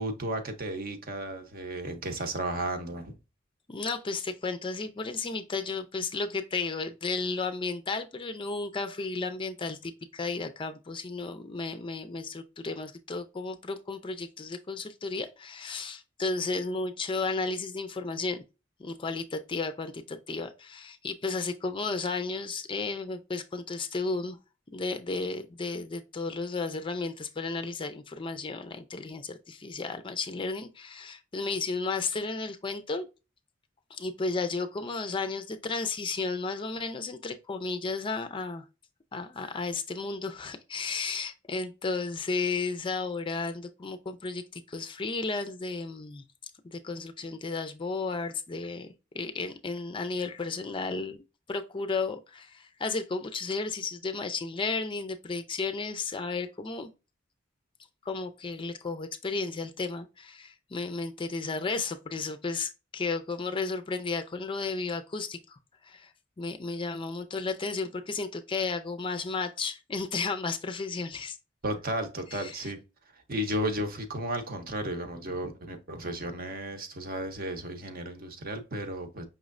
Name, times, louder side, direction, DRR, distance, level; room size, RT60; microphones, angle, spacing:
voice 1, 0.0-3.2 71.6-72.8 73.3-79.2, right 1 dB, 50° right, 0.8 m, -34 dB
voice 2, 3.7-18.4 18.8-24.4 24.7-33.1 33.9-38.6 39.1-46.2 46.6-48.9 49.1-51.2 51.5-56.9 58.0-66.1 66.4-71.4 72.3-72.7, left 3 dB, 25° left, 0.4 m, -33 dB
5.5 x 3.1 x 2.5 m
head